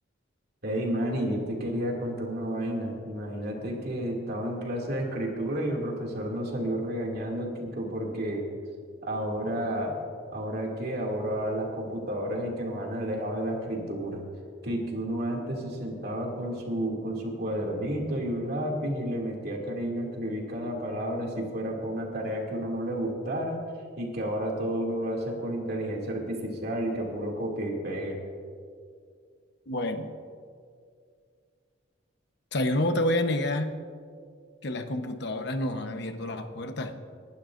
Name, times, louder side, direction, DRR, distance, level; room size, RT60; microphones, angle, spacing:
voice 1, 0.6-8.5 9.0-9.9 10.3-14.2 14.6-23.6 24.0-28.2, right 1 dB, 60° right, -1 dB, 2.4 m, -31 dB
voice 2, 29.7-30.1 32.5-33.8 34.6-36.9, left 1 dB, 65° left, 7 dB, 1.0 m, -28 dB
29.5 x 11.5 x 2.6 m, 2.2 s
head